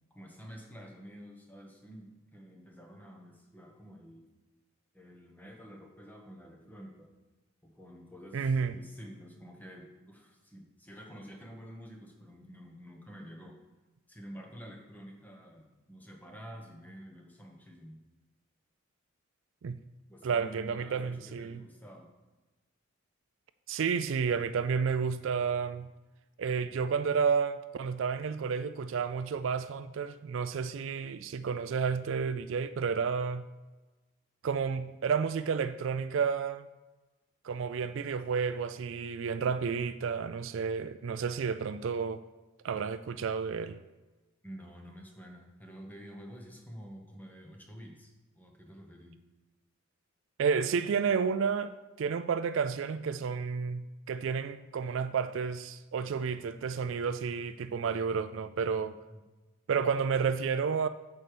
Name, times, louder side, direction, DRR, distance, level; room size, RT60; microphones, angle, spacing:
voice 1, 0.1-4.3 4.9-7.1 7.6-13.6 14.1-18.0 20.1-22.1 44.4-49.2 59.1-59.2, equal, 10° left, 1.1 m, -49 dB
voice 2, 8.3-8.8 19.6-19.8 20.2-21.6 23.7-25.9 26.4-33.4 34.4-36.7 37.4-42.2 42.6-43.8 50.4-59.0 59.7-60.9, right 6 dB, 60° right, 0.3 m, -31 dB
8.4 x 4.6 x 6.8 m
head